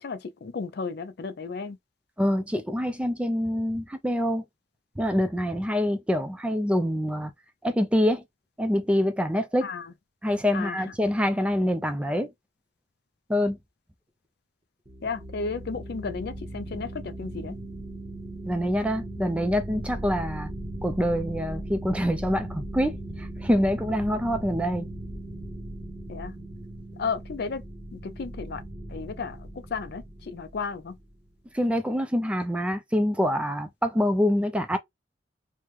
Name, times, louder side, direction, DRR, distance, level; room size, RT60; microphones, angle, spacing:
voice 1, 0.0-1.8 9.6-9.9 10.5-10.8 15.0-17.6 26.1-26.3 27.0-27.6 27.9-28.6 28.9-31.0, left 5 dB, 60° left, 0.5 m, -33 dB
voice 2, 2.2-4.4 5.0-7.3 7.6-8.2 8.6-9.7 10.2-12.3 13.3-13.6 18.4-20.5 20.8-24.9 31.5-34.8, equal, 5° right, 0.4 m, -25 dB
sound 1, 14.9-31.1, right 1 dB, 25° right, 0.8 m, -38 dB
3.4 x 2.1 x 2.9 m
head